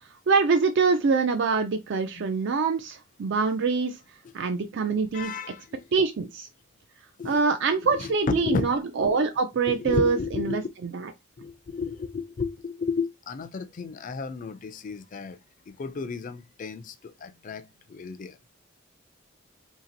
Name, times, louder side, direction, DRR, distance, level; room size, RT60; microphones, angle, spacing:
voice 1, 0.0-4.0 4.3-5.3 5.9-6.5 7.2-11.1, right 4 dB, 60° right, 0.4 m, -25 dB
voice 2, 5.1-5.8 7.2-7.4 8.0-8.7 9.7-10.6 11.4-15.4 15.7-18.4, left 4 dB, 40° left, 0.4 m, -33 dB
2.8 x 2.8 x 3.9 m
head